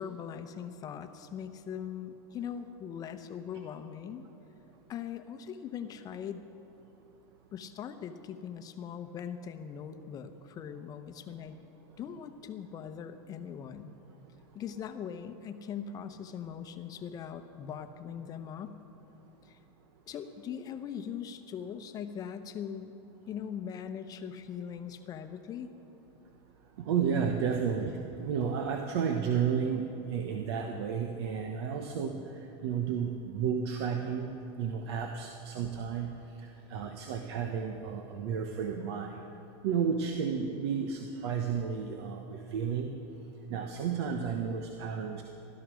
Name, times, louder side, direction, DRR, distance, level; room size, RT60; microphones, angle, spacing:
voice 1, 0.0-4.2 4.9-6.4 7.5-11.6 12.0-14.0 14.5-18.8 19.4-19.6 20.1-23.0 23.3-25.7, left 8 dB, 25° left, 8 dB, 0.8 m, -41 dB
voice 2, 26.8-32.2 32.6-36.1 36.4-39.2 39.6-42.9 43.5-45.2, right 7 dB, 70° right, 4 dB, 1.1 m, -32 dB
16.0 x 12.5 x 6.3 m, 3.0 s
supercardioid pair, 155°, 14 cm